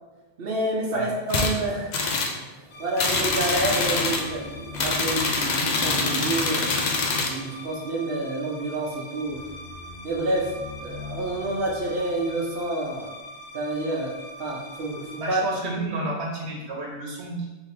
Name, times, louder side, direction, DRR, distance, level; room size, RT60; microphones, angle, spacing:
voice 1, 0.4-1.9 2.3-2.5 2.8-6.7 7.1-9.4 10.0-10.5 10.8-13.1 13.5-14.1 14.4-15.4, right 2 dB, 65° right, -2 dB, 1.0 m, -28 dB
sound 1, 1.3-1.5 1.9-2.4 3.0-4.3 4.7-7.4, left 3 dB, 50° left, 0.6 m, -25 dB
sound 2, 2.7-16.3, left 1 dB, 80° left, 1.1 m, -41 dB
voice 2, 15.2-17.5, right 2 dB, 90° right, -1 dB, 1.1 m, -31 dB
3.6 x 2.9 x 4.6 m, 1.2 s
omnidirectional pair, 1.1 m